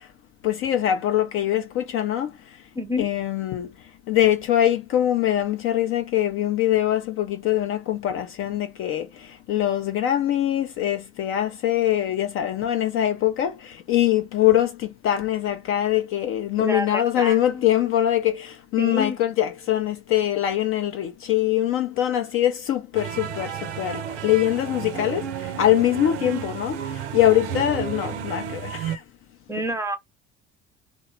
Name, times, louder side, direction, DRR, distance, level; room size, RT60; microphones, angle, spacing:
voice 1, 0.4-2.3 3.0-3.7 4.1-29.0, left 12 dB, 40° left, 0.4 m, -23 dB
voice 2, 2.7-3.1 16.6-17.6 18.8-19.2 29.5-30.0, left 1 dB, 10° right, 0.7 m, -28 dB
sound 1, 22.9-29.0, right 8 dB, 75° right, 0.5 m, -32 dB
2.9 x 2.1 x 3.2 m
figure-of-eight pair, 60°, 35 cm